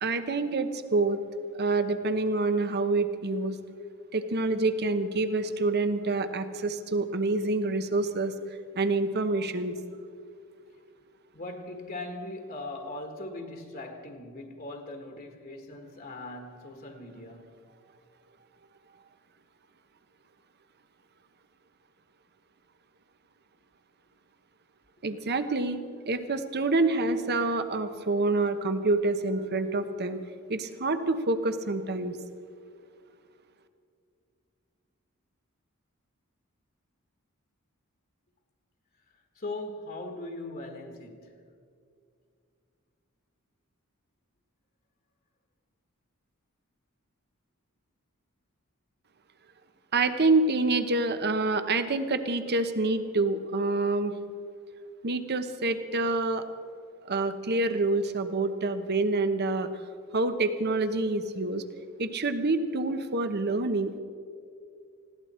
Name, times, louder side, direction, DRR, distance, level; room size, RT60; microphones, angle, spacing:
voice 1, 0.0-1.2 1.6-3.6 4.1-8.3 8.7-9.7 25.0-25.8 26.1-30.2 30.5-32.2 49.9-54.1 55.0-56.4 57.0-59.7 60.1-61.6 62.0-64.0, right 3 dB, 50° right, 1.0 m, -27 dB
voice 2, 11.3-17.5 39.1-41.5, left 2 dB, 45° left, 1.7 m, -40 dB
20.5 x 16.0 x 4.4 m
head